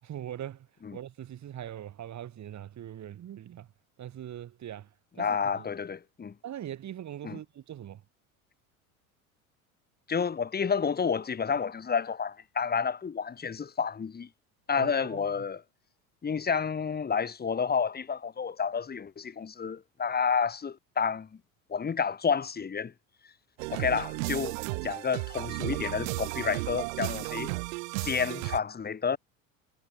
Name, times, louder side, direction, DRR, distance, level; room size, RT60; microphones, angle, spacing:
voice 1, 0.0-0.7 0.9-3.7 4.0-4.9 5.1-5.7 6.4-8.0 14.8-15.3, right 11 dB, 40° right, 5.0 m, -41 dB
voice 2, 5.2-6.3 7.2-7.4 10.1-14.3 14.7-15.6 16.2-21.3 21.7-22.9 23.7-24.6 24.8-27.5 28.0-29.2, left 6 dB, 20° left, 2.3 m, -30 dB
sound 1, 23.6-28.6, right 27 dB, 65° right, 0.9 m, -34 dB
hypercardioid pair, 85°, 42 cm